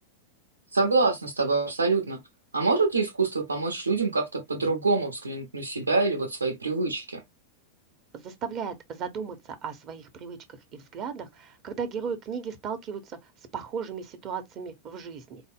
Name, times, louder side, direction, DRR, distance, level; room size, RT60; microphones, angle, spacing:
voice 1, 0.7-2.2 2.5-7.2, right 3 dB, 75° right, 1.0 m, -25 dB
voice 2, 8.1-15.4, right 6 dB, 35° right, 0.9 m, -36 dB
4.6 x 2.1 x 3.5 m
figure-of-eight pair, 90°, 0 cm